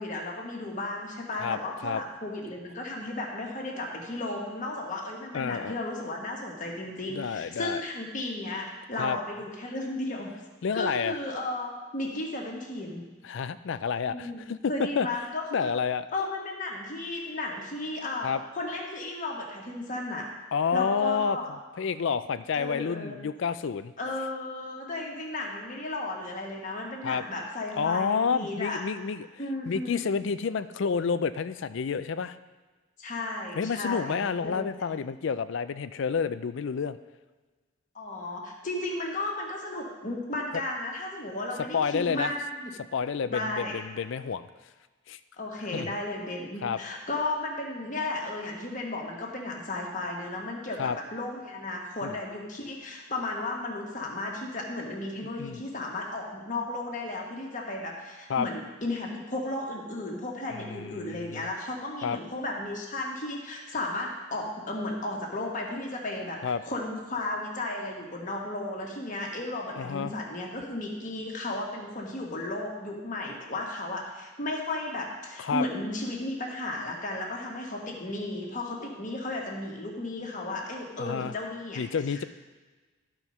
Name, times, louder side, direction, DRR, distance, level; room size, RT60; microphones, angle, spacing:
voice 1, 0.0-10.3 10.7-13.0 14.0-15.7 16.1-20.3 20.7-21.5 22.5-23.2 24.0-28.8 29.4-30.0 33.0-34.8 37.9-42.7 43.3-43.8 45.4-81.8 82.1-82.2, left 2 dB, 35° left, -1 dB, 1.5 m, -34 dB
voice 2, 1.4-2.0 5.3-5.8 7.1-7.8 9.0-9.2 10.6-11.2 13.2-15.1 15.5-16.1 18.2-18.4 20.5-21.4 21.8-23.9 27.0-27.2 27.8-29.3 29.7-32.4 33.5-37.0 41.7-42.3 42.9-44.5 45.1-45.2 45.7-46.0 46.6-46.8 50.8-51.0 52.0-52.1 55.4-55.6 58.3-58.5 60.5-61.5 62.0-62.2 66.4-66.6 69.8-70.1 75.4-75.7 81.0-81.3 81.8-82.2, left 6 dB, 60° left, 14 dB, 0.4 m, -29 dB
13.0 x 4.5 x 5.4 m, 1.3 s
head